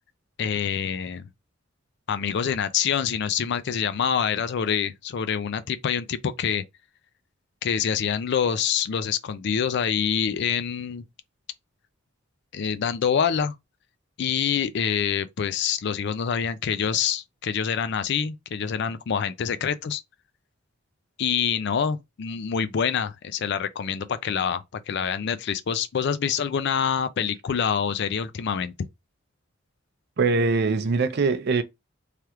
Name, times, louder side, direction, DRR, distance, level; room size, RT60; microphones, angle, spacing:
voice 1, 0.4-1.3 2.1-6.6 7.6-11.1 12.5-13.5 14.2-20.0 21.2-28.7, left 7 dB, 60° left, 0.4 m, -26 dB
voice 2, 30.2-31.6, right 4 dB, 55° right, 0.5 m, -22 dB
3.3 x 2.3 x 2.9 m
head